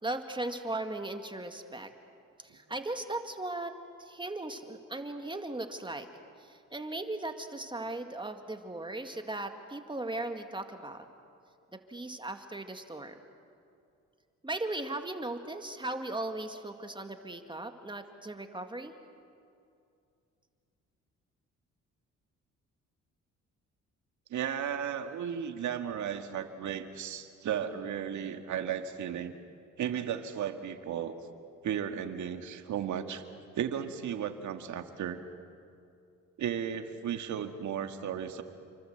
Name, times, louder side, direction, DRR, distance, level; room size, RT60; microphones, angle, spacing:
voice 1, 0.0-1.9 2.4-3.7 4.0-6.1 6.4-11.1 11.7-13.2 14.4-18.9, right 2 dB, 15° right, 6 dB, 2.0 m, -37 dB
voice 2, 24.3-29.3 29.8-31.1 31.6-33.2 33.5-35.2 36.4-38.4, right 9 dB, 70° right, 7 dB, 2.1 m, -34 dB
29.5 x 24.5 x 8.0 m, 2.5 s
cardioid pair, 90°, 30 cm